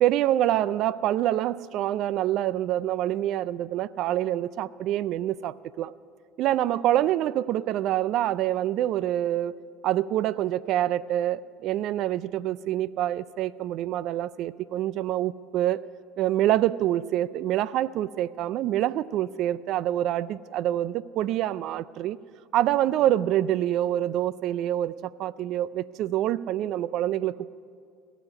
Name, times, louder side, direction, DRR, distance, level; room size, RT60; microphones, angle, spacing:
voice 1, 0.0-5.9 6.4-9.6 9.8-15.8 16.2-22.2 22.5-27.5, right 13 dB, 60° right, 0.4 m, -26 dB
18.0 x 7.1 x 9.6 m
hypercardioid pair, 70°, 0 cm